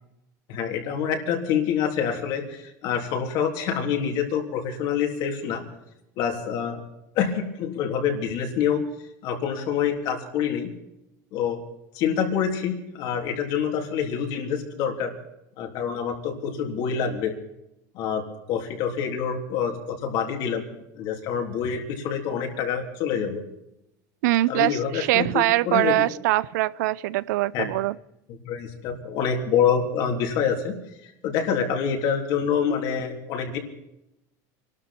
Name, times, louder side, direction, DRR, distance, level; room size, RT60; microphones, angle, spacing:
voice 1, 0.5-5.7 6.2-6.8 7.2-8.8 9.2-10.7 11.3-11.6 11.9-15.1 15.6-17.4 18.0-18.2 18.5-20.6 21.0-23.4 24.5-25.9 27.5-27.6 28.4-30.8 31.0-33.6, left 7 dB, 55° left, 3 dB, 3.4 m, -26 dB
voice 2, 24.2-28.0, right 17 dB, 85° right, 19 dB, 0.6 m, -23 dB
25.0 x 12.5 x 4.4 m, 0.87 s
supercardioid pair, 150°, 9 cm